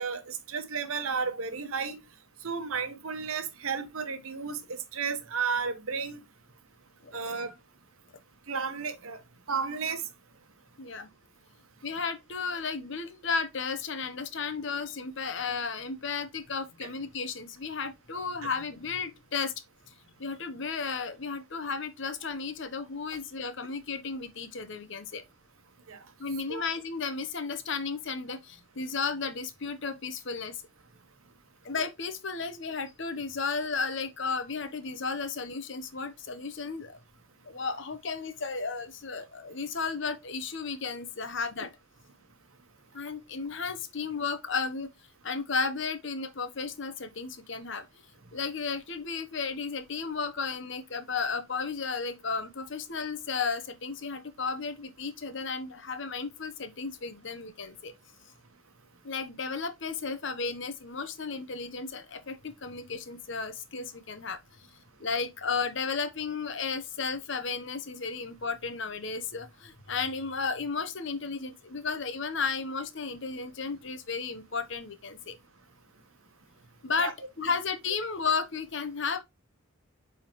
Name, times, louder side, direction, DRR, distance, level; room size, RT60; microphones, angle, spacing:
voice 1, 0.0-2.0 2.4-6.2 7.1-7.5 8.5-9.2 9.5-10.0 16.8-16.9 25.9-26.0 26.5-26.6 77.0-77.1, right 5 dB, 80° right, 1.0 m, -33 dB
voice 2, 10.8-11.1 11.8-19.5 19.9-20.0 20.2-25.2 26.2-30.6 31.6-37.0 37.4-41.7 42.9-44.9 45.2-47.9 48.3-57.9 59.0-64.4 65.0-75.4 76.8-79.2, left 5 dB, 60° left, 0.9 m, -34 dB
8.6 x 3.6 x 3.0 m
head